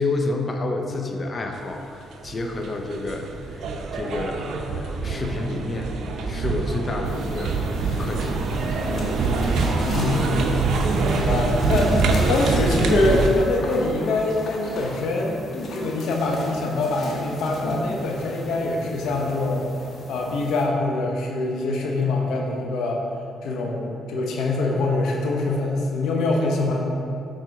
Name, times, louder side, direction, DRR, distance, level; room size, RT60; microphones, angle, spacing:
voice 1, 0.0-5.9 6.3-7.6 8.0-8.5, left 2 dB, 40° left, 3 dB, 0.8 m, -29 dB
sound 1, 2.2-13.3, right 3 dB, 70° right, 0.7 m, -24 dB
sound 2, 7.0-20.7, left 2 dB, 65° left, 1.4 m, -37 dB
voice 2, 9.9-10.6 11.1-12.0 12.3-15.4 15.7-19.7 20.1-23.0 23.4-26.8, left 2 dB, 80° left, 0 dB, 1.0 m, -24 dB
7.7 x 4.4 x 4.8 m, 2.6 s
supercardioid pair, 70°, 0 cm